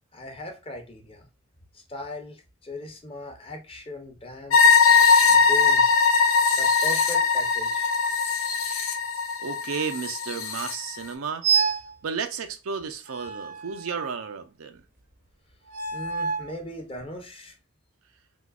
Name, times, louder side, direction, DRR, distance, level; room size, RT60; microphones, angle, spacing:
voice 1, 0.1-1.3 1.7-4.8 5.3-5.9 6.6-7.9 15.9-17.5, left 1 dB, 25° left, 0.7 m, -38 dB
sound 1, 4.5-10.7, left 5 dB, 75° left, 0.7 m, -20 dB
voice 2, 9.4-11.5 12.0-14.8, right 6 dB, 85° right, 0.5 m, -33 dB
sound 2, 11.4-11.9 13.1-14.3 15.7-16.5, right 6 dB, 40° right, 0.6 m, -27 dB
3.7 x 2.8 x 2.3 m
head